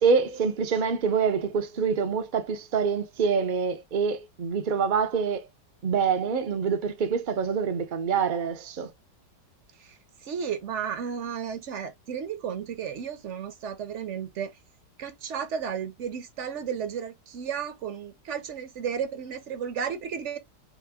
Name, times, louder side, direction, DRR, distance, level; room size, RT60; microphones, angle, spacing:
voice 1, 0.0-5.5 5.8-8.9, right 6 dB, 80° right, 0.4 m, -26 dB
voice 2, 9.8-14.5 15.0-20.4, right 7 dB, 55° right, 0.8 m, -33 dB
4.3 x 2.9 x 3.4 m
omnidirectional pair, 1.8 m